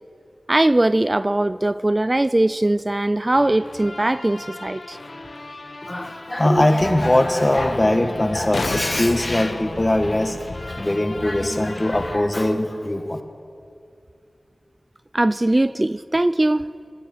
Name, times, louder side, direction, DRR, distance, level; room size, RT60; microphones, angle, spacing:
voice 1, 0.5-5.0 6.5-6.6 15.1-16.7, right 1 dB, 30° right, 15 dB, 0.3 m, -20 dB
sound 1, 3.3-12.2, left 2 dB, 60° left, 0.9 m, -35 dB
voice 2, 5.8-10.4 10.7-13.2, left 1 dB, 30° left, 6 dB, 1.3 m, -21 dB
sound 2, 8.3-10.3 13.2-13.3, left 3 dB, 85° left, 0.5 m, -31 dB
18.0 x 9.3 x 8.6 m, 2.5 s
wide cardioid pair, 50°, 0 cm